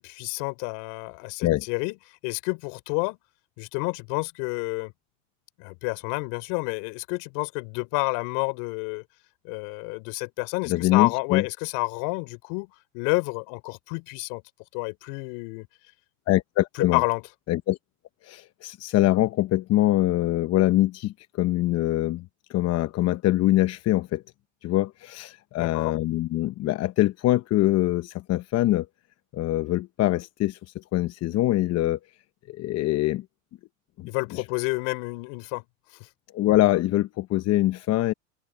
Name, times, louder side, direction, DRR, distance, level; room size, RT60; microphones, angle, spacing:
voice 1, 0.0-3.2 3.6-4.9 5.6-9.0 9.4-14.4 14.7-15.7 16.8-17.2 25.6-25.9 34.1-35.6 35.9-36.1, left 33 dB, 60° left, 4.5 m, -29 dB
voice 2, 10.6-11.4 16.3-17.0 17.5-17.8 18.2-24.2 24.6-28.9 29.3-32.0 32.5-33.2 34.0-34.4 36.3-38.1, left 15 dB, 40° left, 1.0 m, -24 dB
open air
hypercardioid pair, 105°, 39 cm